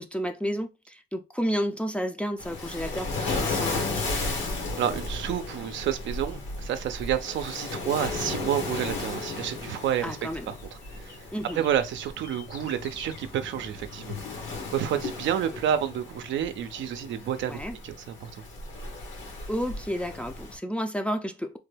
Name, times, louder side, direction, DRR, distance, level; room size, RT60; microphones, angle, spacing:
voice 1, 0.0-4.0 10.0-10.5 11.3-11.7 17.5-17.8 19.5-21.6, equal, 5° left, 0.4 m, -31 dB
Waves surf, 2.4-20.6, left 3 dB, 75° left, 1.4 m, -35 dB
voice 2, 4.8-10.2 10.5-10.6 10.9-11.2 11.5-14.2 14.7-18.4, right 10 dB, 75° right, 0.5 m, -29 dB
sound 1, 8.0-8.2 10.5-13.2, left 5 dB, 45° left, 0.8 m, -49 dB
3.2 x 2.2 x 3.3 m
cardioid pair, 90°, 20 cm